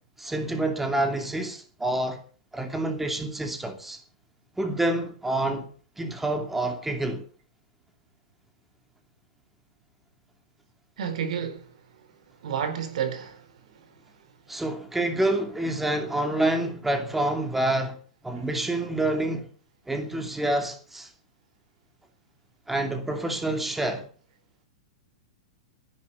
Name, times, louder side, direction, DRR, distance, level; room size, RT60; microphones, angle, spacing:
voice 1, 0.2-2.2 2.5-4.0 4.6-5.7 6.0-7.2 14.5-18.0 18.2-19.5 19.9-21.1 22.7-24.1, right 1 dB, 5° right, 2.7 m, -27 dB
voice 2, 11.0-11.7 12.4-13.9, right 8 dB, 70° right, 4.5 m, -31 dB
15.5 x 10.5 x 8.4 m
hypercardioid pair, 145°, 4 cm